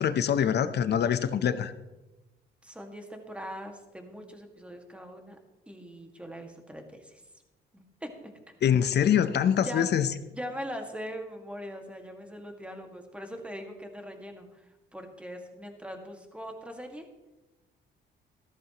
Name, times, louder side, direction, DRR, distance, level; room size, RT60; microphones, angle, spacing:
voice 1, 0.0-1.7 8.6-10.1, left 8 dB, 55° left, 12 dB, 0.8 m, -24 dB
voice 2, 2.6-5.4 5.7-7.2 7.7-8.3 9.6-9.9 10.3-17.1, equal, 5° right, 4 dB, 1.9 m, -41 dB
14.5 x 13.0 x 3.0 m, 1.1 s
cardioid pair, 90°, 20 cm